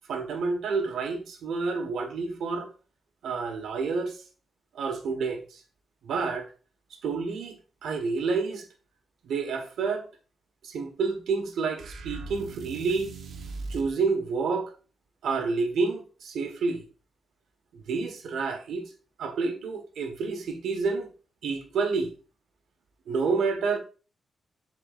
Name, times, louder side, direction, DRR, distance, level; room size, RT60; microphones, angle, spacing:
voice 1, 0.1-2.7 3.2-4.2 4.7-5.6 6.0-6.4 7.0-8.6 9.2-10.0 10.6-13.1 13.7-14.7 15.2-16.8 17.7-18.8 19.2-21.1 21.4-22.1 23.1-23.8, right 4 dB, 85° right, 1.3 m, -29 dB
sound 1, 11.8-13.9, right 3 dB, 60° right, 1.0 m, -39 dB
11.5 x 4.4 x 2.5 m
wide cardioid pair, 175°, 0 cm